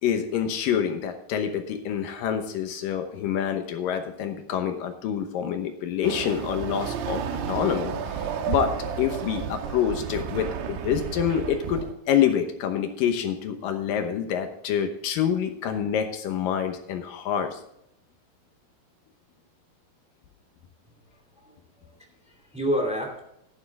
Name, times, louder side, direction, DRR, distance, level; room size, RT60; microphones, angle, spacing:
voice 1, 0.0-7.2 7.5-17.6, left 8 dB, 70° left, 6 dB, 2.3 m, -27 dB
Chatter / Car passing by / Motorcycle, 6.0-11.9, right 7 dB, 85° right, 3.2 m, -32 dB
voice 2, 21.1-23.2, equal, 5° right, 1 dB, 1.3 m, -31 dB
11.5 x 11.0 x 3.6 m, 0.77 s
omnidirectional pair, 4.7 m